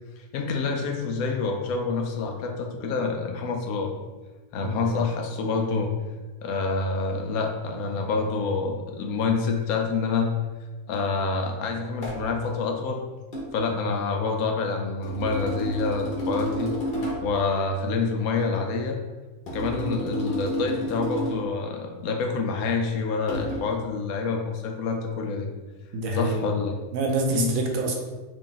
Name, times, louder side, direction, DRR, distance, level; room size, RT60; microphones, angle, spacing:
voice 1, 0.2-3.9 4.5-5.9 6.4-10.3 10.9-13.0 13.5-16.7 17.2-19.0 19.5-25.5 26.2-26.8 27.3-27.5, left 4 dB, 80° left, 3 dB, 1.0 m, -27 dB
sound 1, 12.0-12.3 13.3-13.5 15.0-17.4 19.5-21.5 23.3-23.6, equal, 45° left, 1.1 m, -31 dB
voice 2, 25.9-26.4 26.9-27.9, right 2 dB, 75° right, 1 dB, 1.0 m, -26 dB
3.4 x 2.5 x 3.8 m, 1.3 s
omnidirectional pair, 1.5 m